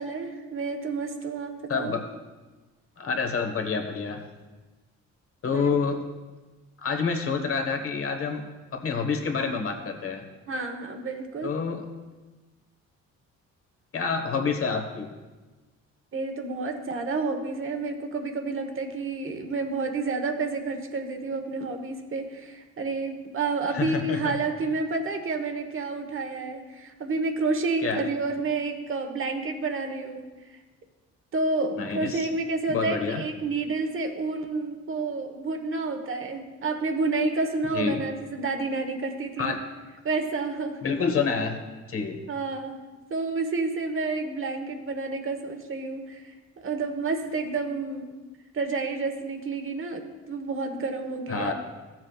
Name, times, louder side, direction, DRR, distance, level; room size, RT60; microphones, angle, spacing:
voice 1, 0.0-1.9 5.5-5.7 10.5-11.6 16.1-30.3 31.3-39.5 40.0-40.8 42.3-42.8 43.1-48.0 48.5-51.5, right 3 dB, 45° right, 6 dB, 1.2 m, -30 dB
voice 2, 1.7-2.0 3.0-4.2 5.4-6.0 6.8-8.4 8.7-10.2 11.4-11.8 13.9-15.1 23.7-24.4 27.8-28.0 31.8-32.3 32.7-33.2 37.7-38.0 39.4-39.6 40.8-41.6 41.9-42.2 51.3-51.5, left 5 dB, 45° left, 4 dB, 1.4 m, -28 dB
14.5 x 7.4 x 2.4 m, 1.3 s
cardioid pair, 90°, 30 cm